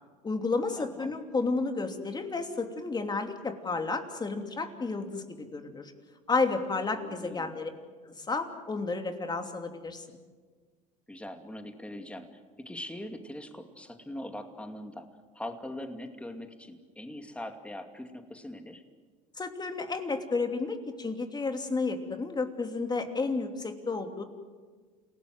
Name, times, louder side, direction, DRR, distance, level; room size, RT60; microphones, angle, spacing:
voice 1, 0.2-5.9 6.3-7.7 8.1-10.0 19.4-24.2, left 3 dB, 25° left, 6 dB, 3.0 m, -31 dB
voice 2, 0.8-1.1 6.9-7.5 11.1-12.3 12.6-15.0 15.3-18.8, left 1 dB, 5° left, 6 dB, 2.5 m, -41 dB
28.5 x 18.0 x 7.9 m, 1.5 s
supercardioid pair, 85°, 18 cm